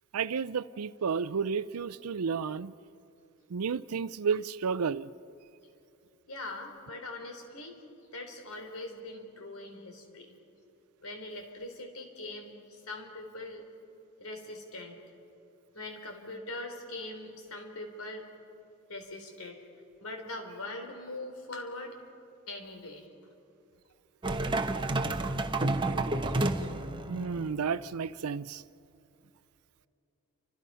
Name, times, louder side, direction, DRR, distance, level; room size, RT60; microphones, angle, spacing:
voice 1, 0.1-2.7 3.5-5.1 27.1-28.6, right 6 dB, 90° right, 0.5 m, -32 dB
voice 2, 6.3-7.8 8.1-10.3 11.0-13.6 14.2-15.0 15.7-18.3 18.9-19.6 20.0-21.9 22.5-23.1, left 2 dB, 75° left, 3.8 m, -42 dB
sound 1, 24.2-27.6, right 2 dB, 20° right, 1.1 m, -30 dB
29.5 x 26.0 x 5.6 m
head